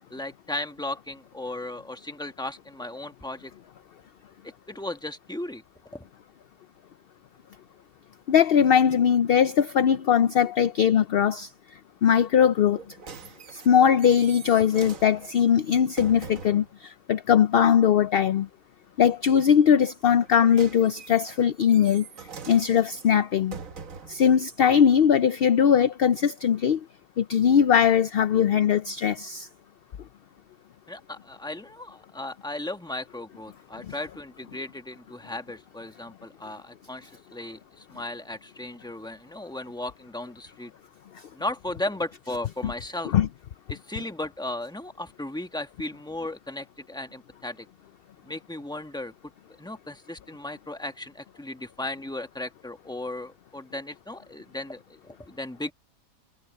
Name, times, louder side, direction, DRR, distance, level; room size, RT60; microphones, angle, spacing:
voice 1, 0.1-3.5 4.4-5.6 5.9-6.0 30.9-40.7 41.3-43.1 43.7-47.7 48.2-49.1 49.6-55.7, left 1 dB, 5° left, 1.3 m, -36 dB
voice 2, 8.3-11.5 12.0-13.0 13.5-18.5 19.0-22.1 22.5-23.6 24.1-26.8 27.2-29.5 41.1-41.2 43.1-43.3, left 8 dB, 60° left, 0.6 m, -20 dB
sound 1, 12.7-16.7 20.1-24.3 25.0-25.1, right 5 dB, 70° right, 1.6 m, -43 dB
omnidirectional pair, 1.5 m